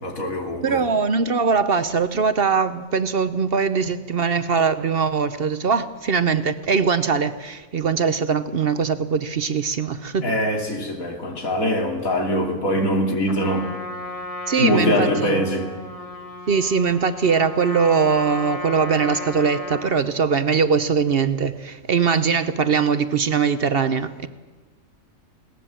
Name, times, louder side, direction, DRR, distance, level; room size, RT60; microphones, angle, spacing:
voice 1, 0.0-0.8 10.2-13.7 14.6-15.7, left 1 dB, 85° left, 3.3 m, -23 dB
voice 2, 0.6-10.3 14.5-15.5 16.5-24.3, right 5 dB, 50° right, 0.9 m, -21 dB
Trumpet, 13.2-20.1, left 2 dB, 25° left, 1.8 m, -35 dB
21.5 x 18.0 x 7.5 m
omnidirectional pair, 1.4 m